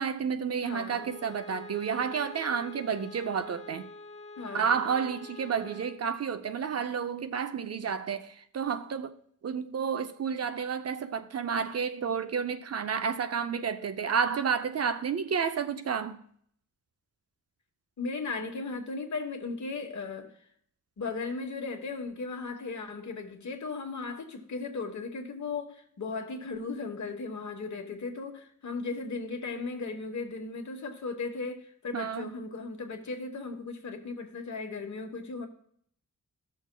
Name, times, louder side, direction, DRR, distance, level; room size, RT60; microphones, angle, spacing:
voice 1, 0.0-3.9 4.5-9.1 9.4-16.2 31.9-32.3, right 6 dB, 50° right, 0.5 m, -31 dB
voice 2, 0.6-1.1 4.4-4.8 18.0-20.3 21.0-35.5, left 4 dB, 60° left, 1.1 m, -36 dB
Bowed string instrument, 0.9-6.1, left 3 dB, 20° left, 0.7 m, -46 dB
15.0 x 6.4 x 2.2 m
wide cardioid pair, 150°, 32 cm